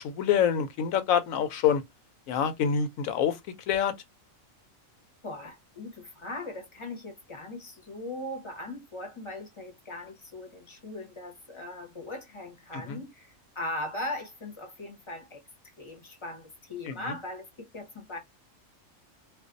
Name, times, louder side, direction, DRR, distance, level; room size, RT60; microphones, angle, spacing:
voice 1, 0.0-1.8 2.3-3.4 3.7-3.9 12.7-13.0 16.9-17.0, left 8 dB, 80° left, 1.0 m, -26 dB
voice 2, 5.2-15.4 15.8-18.2, left 1 dB, 30° left, 0.7 m, -39 dB
2.4 x 2.2 x 2.4 m
omnidirectional pair, 1.4 m